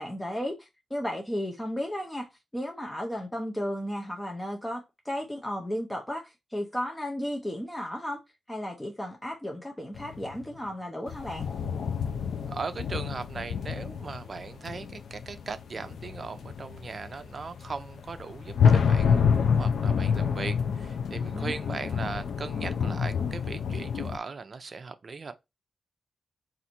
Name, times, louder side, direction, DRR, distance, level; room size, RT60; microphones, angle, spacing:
voice 1, 0.0-2.3 2.5-8.2 8.5-11.5 21.3-21.5, equal, 10° left, 0.6 m, -34 dB
sound 1, 9.9-10.4 11.1-24.2, left 6 dB, 90° left, 0.5 m, -28 dB
voice 2, 12.5-25.3, right 4 dB, 45° right, 0.5 m, -38 dB
4.0 x 2.5 x 4.3 m
wide cardioid pair, 135°, 0 cm